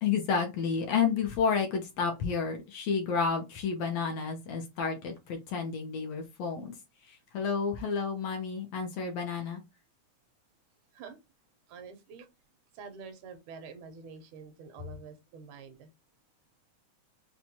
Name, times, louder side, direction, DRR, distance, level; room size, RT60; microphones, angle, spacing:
voice 1, 0.0-6.7 7.1-9.6, left 6 dB, 70° left, 1.7 m, -31 dB
voice 2, 11.7-12.3 12.7-15.9, right 5 dB, 80° right, 2.3 m, -47 dB
6.1 x 2.3 x 2.7 m
omnidirectional pair, 3.5 m